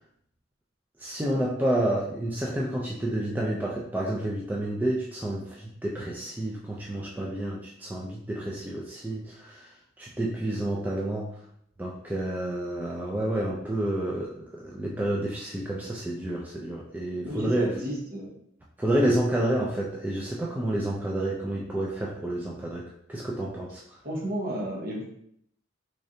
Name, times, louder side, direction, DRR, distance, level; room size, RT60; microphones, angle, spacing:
voice 1, 1.0-9.7 10.0-11.4 11.8-17.7 18.8-23.8, right 1 dB, 10° right, -3 dB, 0.3 m, -29 dB
voice 2, 17.2-18.3 24.0-25.1, equal, 50° right, -3 dB, 1.0 m, -32 dB
3.8 x 3.1 x 2.7 m, 0.69 s
head